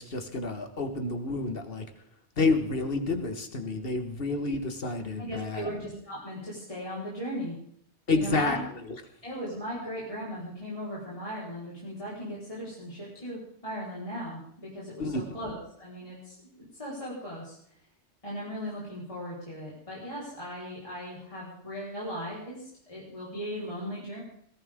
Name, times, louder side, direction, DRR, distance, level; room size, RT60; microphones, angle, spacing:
voice 1, 0.0-1.8 2.4-5.7 8.1-8.6 15.0-15.3, left 3 dB, 55° left, 6 dB, 1.8 m, -29 dB
voice 2, 5.2-7.5 8.1-8.6 9.2-16.3 16.8-17.5 18.2-24.2, equal, 30° left, -7 dB, 4.7 m, -37 dB
21.0 x 15.0 x 3.7 m, 0.67 s
omnidirectional pair, 1.2 m